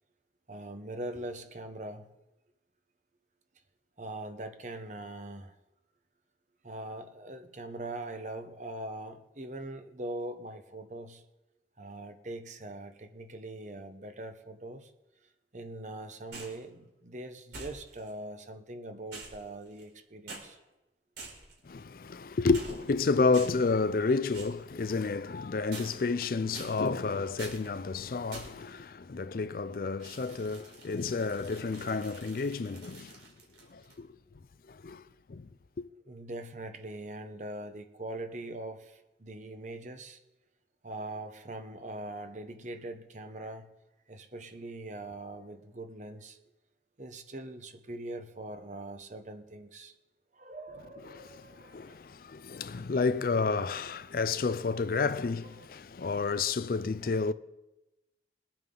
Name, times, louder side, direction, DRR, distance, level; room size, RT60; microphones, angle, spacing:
voice 1, 0.5-2.1 4.0-5.5 6.6-11.2 11.8-14.9 15.5-20.6 36.1-40.2 40.8-43.7 44.1-46.4 47.0-49.9 50.3-52.0 54.5-54.6 55.4-55.8, right 1 dB, 40° right, 1.0 m, -42 dB
sound 1, 16.3-16.6 17.5-18.1 19.1-20.0 20.3-20.4 21.2-21.6 22.5-23.0 23.3-23.7 24.3-24.6 25.7-26.2 26.5-27.0 27.4-27.7 28.3-28.7 30.0-34.0, right 3 dB, 85° right, 3.9 m, -47 dB
voice 2, 21.7-33.1 33.7-34.1 34.8-35.0 35.3-35.4 35.8-35.9 51.1-51.2 51.7-57.3, left 4 dB, 50° left, 0.4 m, -30 dB
22.5 x 9.0 x 3.9 m
head